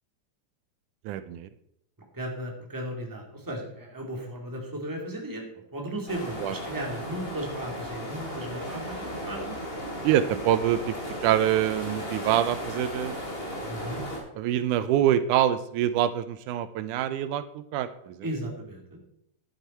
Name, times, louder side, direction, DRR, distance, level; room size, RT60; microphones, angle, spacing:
voice 1, 1.1-1.5 6.4-6.5 10.0-11.0 11.2-13.2 14.4-18.2, right 11 dB, 85° right, 13 dB, 2.1 m, -25 dB
voice 2, 2.1-5.5 5.7-9.6 13.6-14.0 18.2-19.0, right 1 dB, 5° right, 0 dB, 2.1 m, -35 dB
sound 1, 6.1-14.2, equal, 20° left, 2.5 m, -35 dB
11.5 x 9.9 x 4.4 m, 0.75 s
omnidirectional pair, 3.5 m